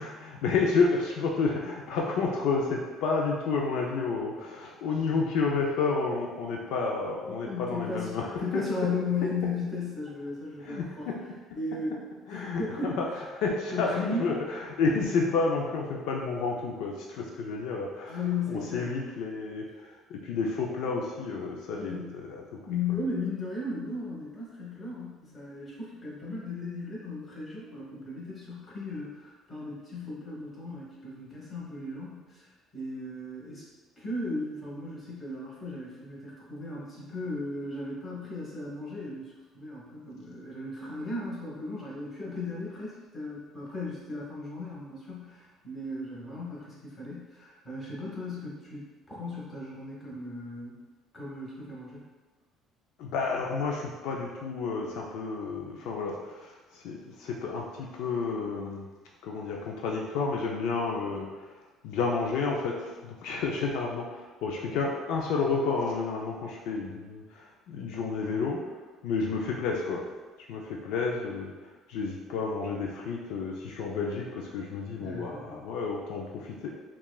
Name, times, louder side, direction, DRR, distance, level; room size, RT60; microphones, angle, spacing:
voice 1, 0.0-8.6 10.6-11.1 12.3-13.1 13.3-18.2 18.5-22.6 53.0-58.9 59.2-61.5 61.8-70.0 70.5-71.5 71.9-76.7, left 4 dB, 75° left, -1 dB, 0.5 m, -30 dB
voice 2, 7.3-11.1 11.5-11.9 12.3-13.0 13.7-14.3 18.1-18.9 21.7-22.2 22.6-33.6 34.0-50.8 51.1-52.0 75.0-75.6, left 3 dB, 20° left, -6 dB, 1.4 m, -36 dB
5.8 x 2.4 x 2.3 m, 1.3 s
cardioid pair, 130°, 0 cm